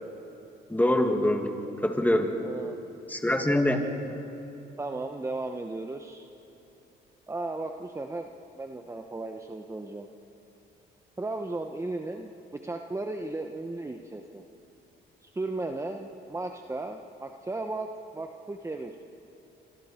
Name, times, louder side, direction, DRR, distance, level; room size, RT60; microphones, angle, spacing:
voice 1, 0.7-1.5 1.8-2.4 3.1-3.9, left 1 dB, 10° left, 4 dB, 2.3 m, -24 dB
voice 2, 2.4-2.8 4.8-6.3 7.3-10.1 11.2-12.3 12.6-14.4 15.2-18.9, right 2 dB, 15° right, 5 dB, 1.0 m, -35 dB
26.5 x 25.5 x 4.5 m, 3.0 s
cardioid pair, 90°, 20 cm